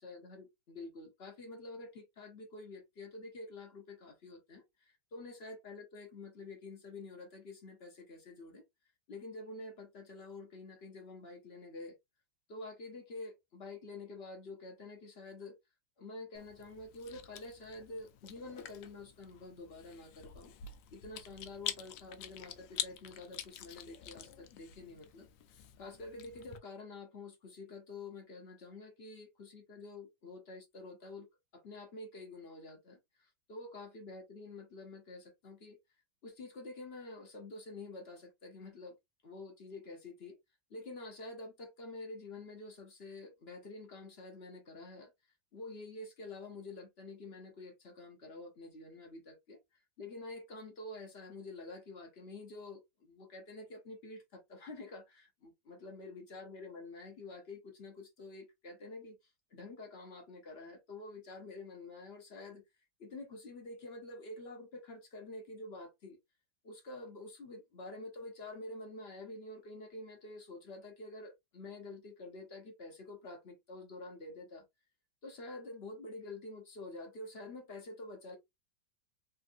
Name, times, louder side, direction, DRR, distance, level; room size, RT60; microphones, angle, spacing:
voice 1, 0.0-8.6 9.1-11.9 12.5-15.6 16.0-20.5 20.9-25.3 25.8-31.3 31.5-35.8 36.2-39.0 39.2-40.4 40.7-45.1 45.5-62.6 63.0-66.2 66.6-74.6 75.2-78.4, left 2 dB, 50° left, 0.8 m, -48 dB
Chewing mastication, 16.4-26.6, left 11 dB, 85° left, 1.3 m, -47 dB
3.4 x 2.5 x 2.5 m
omnidirectional pair, 2.0 m